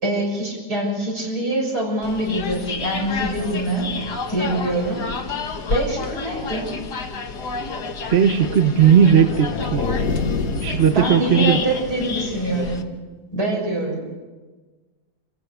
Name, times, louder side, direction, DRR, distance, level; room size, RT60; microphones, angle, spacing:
voice 1, 0.0-3.9 4.3-5.1 5.7-6.7 10.9-12.9 13.3-14.1, right 1 dB, 70° right, -1 dB, 7.1 m, -24 dB
sound 1, 2.0-12.8, left 4 dB, 75° left, 2.1 m, -30 dB
voice 2, 8.1-9.9 10.6-11.6, right 8 dB, 45° right, 8 dB, 1.0 m, -16 dB
sound 2, 9.0-11.9, left 4 dB, 60° left, 1.9 m, -27 dB
28.0 x 15.5 x 6.8 m, 1.3 s
omnidirectional pair, 1.8 m